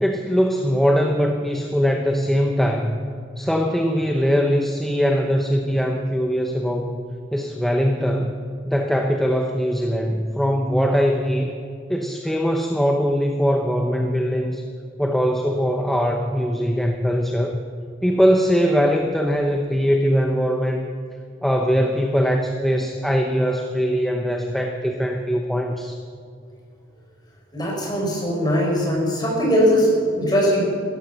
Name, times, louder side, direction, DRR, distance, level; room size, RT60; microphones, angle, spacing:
voice 1, 0.0-3.0 3.4-7.0 7.3-8.3 8.7-11.5 11.9-14.6 15.0-17.6 18.0-20.9 21.4-26.0, equal, ahead, 2 dB, 0.8 m, -21 dB
voice 2, 27.5-30.6, equal, 25° left, -2 dB, 5.3 m, -20 dB
16.5 x 14.0 x 5.8 m, 2.3 s
head